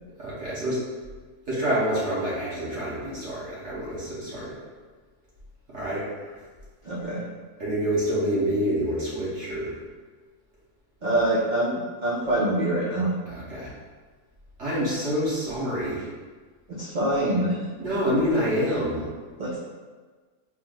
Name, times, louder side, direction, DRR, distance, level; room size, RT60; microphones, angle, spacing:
voice 1, 0.2-0.8 1.5-4.6 5.7-6.4 7.6-9.7 13.3-13.7 14.6-16.1 17.7-19.1, equal, 50° right, -9 dB, 1.6 m, -27 dB
voice 2, 6.8-7.3 11.0-13.1 16.7-17.6 19.4-19.6, right 1 dB, 80° right, -6 dB, 0.4 m, -25 dB
4.4 x 2.0 x 3.8 m, 1.4 s
omnidirectional pair, 1.6 m